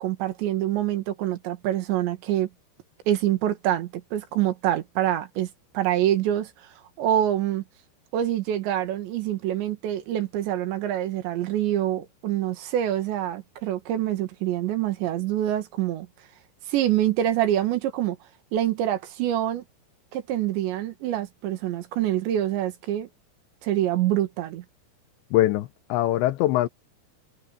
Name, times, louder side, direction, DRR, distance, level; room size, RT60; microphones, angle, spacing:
voice 1, 0.0-2.5 3.1-5.5 5.7-6.5 7.0-7.6 8.1-16.1 16.7-18.2 18.5-19.6 20.1-23.1 23.6-24.6, right 12 dB, 75° right, 4.0 m, -25 dB
voice 2, 25.3-26.7, left 15 dB, 85° left, 3.1 m, -22 dB
omnidirectional pair, 5.2 m